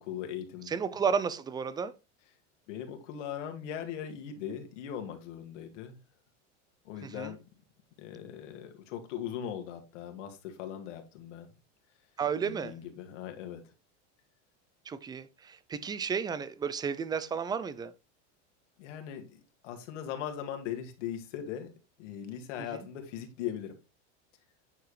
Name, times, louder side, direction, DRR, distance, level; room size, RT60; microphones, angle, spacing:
voice 1, 0.0-0.7 2.7-6.0 6.8-7.4 8.0-11.5 12.4-13.6 18.8-21.7 22.0-23.7, left 9 dB, 80° left, 2.1 m, -39 dB
voice 2, 0.7-2.0 7.0-7.3 12.2-12.8 14.9-17.9 22.6-22.8, right 6 dB, 10° right, 0.4 m, -33 dB
9.5 x 4.7 x 3.2 m
supercardioid pair, 135°, 36 cm